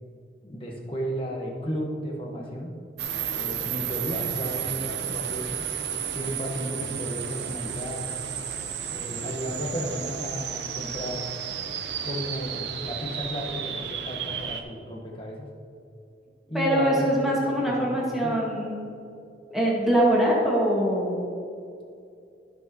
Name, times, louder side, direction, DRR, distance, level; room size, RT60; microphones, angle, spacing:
voice 1, 0.4-2.7 3.3-5.6 6.1-8.2 8.9-11.3 12.0-15.5 16.5-18.4, equal, 30° left, -1 dB, 1.3 m, -33 dB
sound 1, 3.0-14.6, right 8 dB, 75° right, 0.7 m, -32 dB
voice 2, 16.5-18.9 19.5-21.2, right 1 dB, ahead, -5 dB, 1.8 m, -23 dB
14.5 x 6.0 x 3.0 m, 2.5 s
head